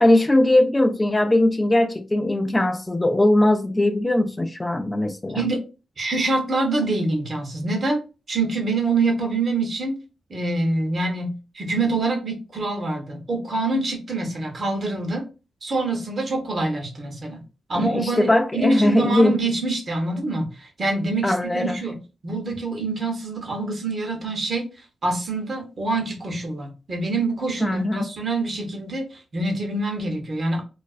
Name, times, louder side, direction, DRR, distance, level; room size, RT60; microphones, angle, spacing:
voice 1, 0.0-5.5 17.8-19.4 21.2-21.8 27.6-28.1, left 1 dB, 20° left, 0.4 m, -20 dB
voice 2, 5.3-5.7 6.0-10.0 10.3-15.3 15.6-17.4 17.7-30.6, right 2 dB, 50° right, 0.9 m, -25 dB
2.4 x 2.2 x 2.4 m
supercardioid pair, 50°, 0 cm